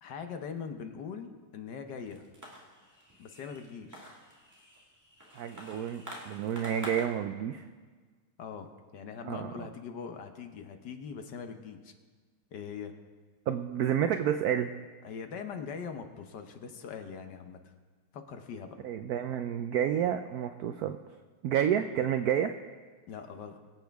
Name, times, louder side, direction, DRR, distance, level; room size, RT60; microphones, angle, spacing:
voice 1, 0.0-2.3 3.2-4.1 8.4-11.9 12.5-12.9 15.0-17.7 18.1-18.8 23.1-23.6, left 6 dB, 65° left, 6 dB, 1.4 m, -42 dB
sound 1, 2.1-7.1, equal, 10° right, 1.8 m, -48 dB
voice 2, 5.4-7.6 9.2-9.5 13.5-14.7 18.8-21.0 21.4-22.5, right 9 dB, 85° right, 8 dB, 0.8 m, -30 dB
23.0 x 8.1 x 3.5 m, 1.5 s
omnidirectional pair, 2.2 m